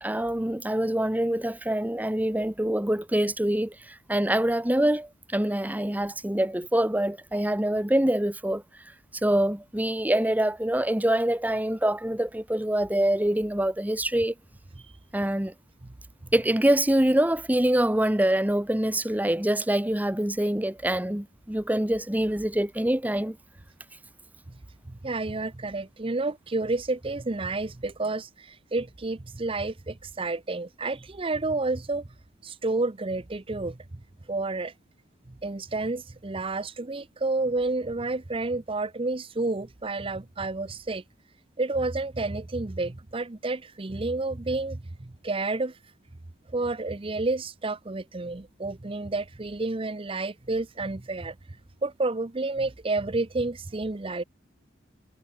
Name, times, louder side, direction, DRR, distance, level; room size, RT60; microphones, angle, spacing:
voice 1, 0.0-8.6 9.1-14.3 15.1-15.5 16.3-23.4, right 1 dB, 10° right, 1.0 m, -25 dB
voice 2, 25.0-32.0 32.4-33.8 34.3-34.7 35.4-41.0 41.6-45.8 46.5-51.3 51.8-54.2, right 2 dB, 25° right, 0.7 m, -30 dB
head